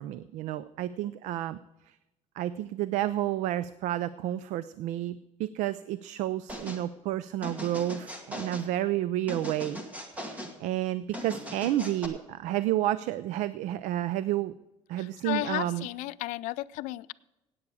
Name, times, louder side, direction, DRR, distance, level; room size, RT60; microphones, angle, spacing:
voice 1, 0.0-1.6 2.4-9.8 10.1-10.2 10.6-14.5 14.9-15.8, right 13 dB, 75° right, 16 dB, 0.4 m, -30 dB
sound 1, 6.5-6.8 7.4-8.7 9.3-10.6 11.1-12.1, equal, 10° right, 1.4 m, -39 dB
voice 2, 14.9-17.1, left 18 dB, 85° left, 18 dB, 0.4 m, -34 dB
16.5 x 8.6 x 4.7 m, 0.98 s
cardioid pair, 155°, 12 cm